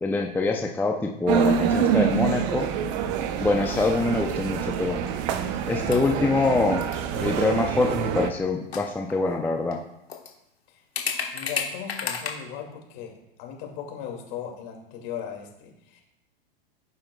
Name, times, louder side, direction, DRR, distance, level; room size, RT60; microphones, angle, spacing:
voice 1, 0.0-2.7 3.4-5.0 5.7-6.8 7.2-9.8, left 3 dB, 5° left, 2 dB, 0.5 m, -25 dB
sound 1, 1.3-8.3, right 8 dB, 50° right, 0.8 m, -26 dB
Drum kit, 3.0-8.5, right 1 dB, 10° right, 2.3 m, -47 dB
sound 2, 3.4-3.8 4.1-4.2 5.1-5.5 5.7-6.1 6.8-7.3 8.5-8.6 8.7-9.3 9.7-9.8 10.1-10.3 11.0-12.3, left 6 dB, 90° left, 1.4 m, -32 dB
voice 2, 11.3-16.0, left 8 dB, 50° left, 1 dB, 2.4 m, -38 dB
14.5 x 5.7 x 2.3 m, 0.85 s
hypercardioid pair, 100°, 30 cm